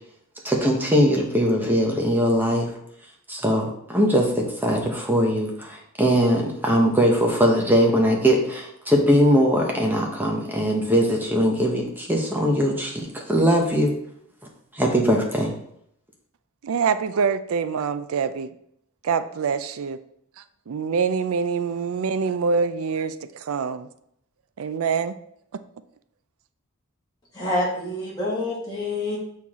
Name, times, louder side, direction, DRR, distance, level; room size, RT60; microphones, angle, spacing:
voice 1, 0.4-2.7 3.3-13.9 14.7-15.5, equal, 10° right, 0 dB, 1.0 m, -21 dB
voice 2, 16.6-18.5 19.0-20.0 20.4-23.9 24.6-25.2 25.5-25.6, right 5 dB, 75° right, 12 dB, 0.4 m, -25 dB
voice 3, 27.4-29.2, left 2 dB, 20° left, -6 dB, 2.1 m, -27 dB
7.0 x 4.5 x 3.6 m, 0.71 s
head